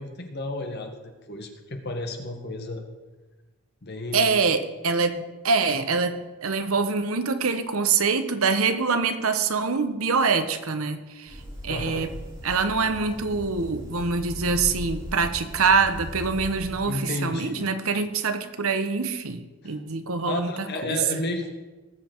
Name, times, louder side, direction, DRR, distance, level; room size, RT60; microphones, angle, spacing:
voice 1, 0.0-2.8 3.8-4.3 11.7-12.1 16.8-17.7 19.6-19.8 20.2-21.5, left 2 dB, 50° left, 4 dB, 1.5 m, -32 dB
voice 2, 4.1-12.1 12.4-21.2, right 4 dB, 75° right, 9 dB, 1.0 m, -25 dB
sound 1, 11.3-16.7, equal, 20° right, 5.0 m, -38 dB
18.5 x 7.5 x 4.5 m, 1.2 s
head